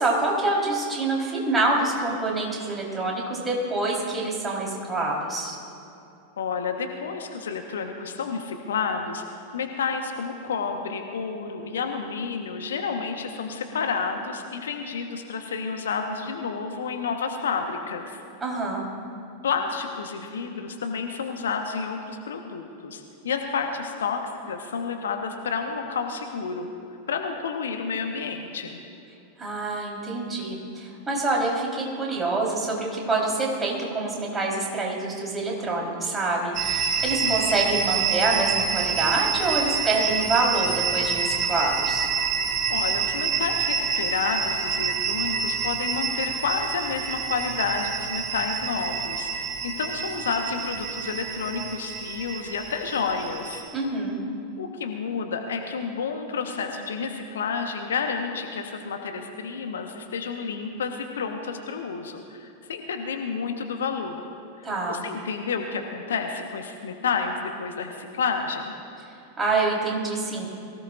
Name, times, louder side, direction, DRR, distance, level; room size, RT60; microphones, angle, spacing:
voice 1, 0.0-5.6 18.4-18.9 29.4-42.1 53.7-54.2 64.6-65.0 69.4-70.5, right 2 dB, 15° right, -3 dB, 4.1 m, -26 dB
voice 2, 6.4-18.2 19.4-26.7 27.1-28.8 37.2-37.5 42.7-53.6 54.6-64.2 64.6-68.7, left 5 dB, 65° left, 4 dB, 1.2 m, -30 dB
sound 1, 36.5-53.6, right 6 dB, 35° right, 1.8 m, -27 dB
23.0 x 17.0 x 2.6 m, 2.8 s
figure-of-eight pair, 90°, 0 cm